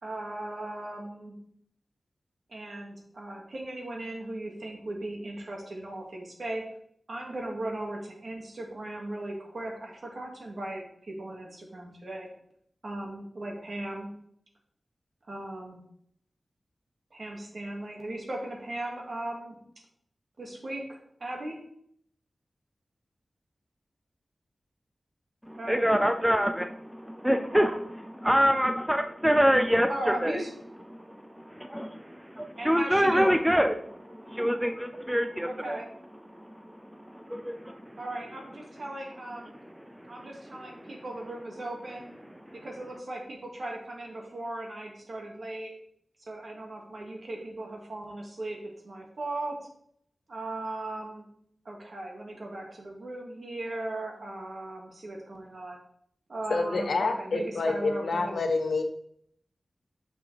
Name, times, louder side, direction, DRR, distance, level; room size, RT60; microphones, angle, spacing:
voice 1, 0.0-1.4 2.5-6.6 7.1-12.3 12.8-14.1 15.3-15.8 17.1-19.6 20.4-21.6 25.5-26.0 29.9-30.5 32.6-33.4 35.5-35.9 38.0-39.5 40.1-42.1 42.6-45.7 46.2-48.6 48.8-49.6 50.3-51.2 51.7-55.8 56.3-58.4, right 1 dB, 65° right, 0 dB, 2.0 m, -37 dB
voice 2, 25.5-30.4 30.9-35.8 36.3-38.0 39.9-40.5 42.5-42.6, equal, 5° right, 7 dB, 0.5 m, -27 dB
voice 3, 56.5-58.8, left 3 dB, 80° left, 5 dB, 0.9 m, -27 dB
6.8 x 6.1 x 3.4 m, 0.67 s
wide cardioid pair, 80°, 0 cm